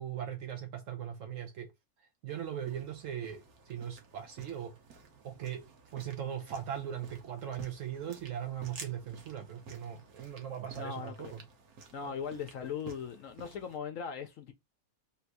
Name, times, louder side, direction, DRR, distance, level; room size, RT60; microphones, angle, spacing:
voice 1, 0.0-1.7 2.0-4.8 5.2-5.7 5.9-11.4 12.0-12.1, right 9 dB, 70° right, 1.0 m, -39 dB
sound 1, 2.3-13.8, right 4 dB, 90° right, 1.4 m, -53 dB
voice 2, 10.8-11.3 11.9-14.5, left 7 dB, 70° left, 1.0 m, -39 dB
3.4 x 2.6 x 4.5 m
omnidirectional pair, 1.5 m